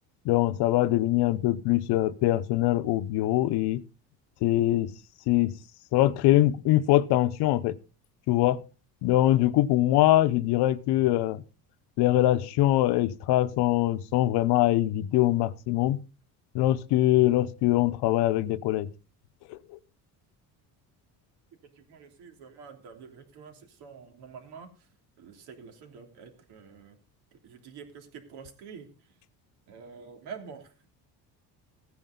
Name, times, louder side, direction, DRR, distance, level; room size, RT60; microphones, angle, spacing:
voice 1, 0.2-3.8 4.4-4.9 5.3-5.5 5.9-7.8 8.3-8.6 9.0-11.4 12.0-16.0 16.5-18.9 19.5-19.6, left 15 dB, 80° left, 0.9 m, -23 dB
voice 2, 21.8-24.7 25.2-26.9 27.3-28.9 29.7-30.9, right 6 dB, 75° right, 3.3 m, -47 dB
15.5 x 9.5 x 3.8 m
cardioid pair, 145°, 39 cm